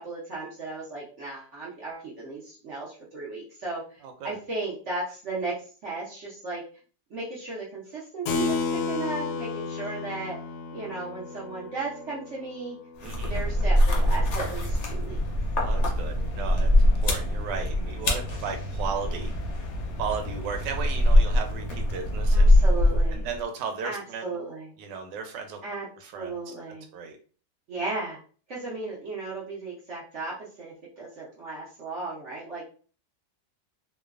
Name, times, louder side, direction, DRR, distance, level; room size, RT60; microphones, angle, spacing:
voice 1, 0.0-5.5 5.8-6.6 7.1-10.4 10.7-12.8 13.1-15.2 22.3-23.3 23.8-24.7 25.6-25.9 26.1-26.8 27.7-28.2 28.5-32.6, right 3 dB, 55° right, -6 dB, 0.9 m, -35 dB
voice 2, 4.0-4.4 13.0-13.3 15.6-19.3 20.0-22.5 23.1-24.2 24.8-25.6 26.0-26.5 26.9-27.2, right 6 dB, 85° right, 5 dB, 1.3 m, -35 dB
Keyboard (musical), 8.3-14.3, left 4 dB, 85° left, 1.2 m, -33 dB
sound 1, 13.0-23.4, left 1 dB, 60° left, 0.7 m, -23 dB
3.0 x 2.1 x 2.3 m, 0.40 s
omnidirectional pair, 1.9 m